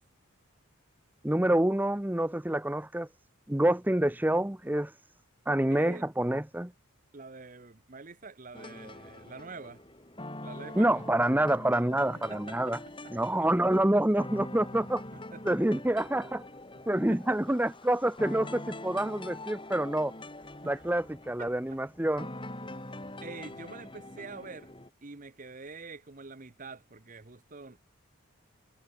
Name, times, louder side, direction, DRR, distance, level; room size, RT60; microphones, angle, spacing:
voice 1, 1.2-3.1 3.5-4.9 5.5-6.7 10.8-12.8 13.1-15.0 15.4-16.4 16.9-20.1 20.7-22.3, right 1 dB, 10° right, 0.6 m, -27 dB
voice 2, 5.7-6.1 7.1-9.8 10.4-10.9 12.1-12.7 13.0-13.1 15.1-15.4 17.1-17.4 20.6-20.8 21.4-21.8 22.9-24.7 25.0-27.8, right 4 dB, 35° right, 1.0 m, -46 dB
sound 1, 8.5-24.9, left 1 dB, 20° left, 4.3 m, -44 dB
head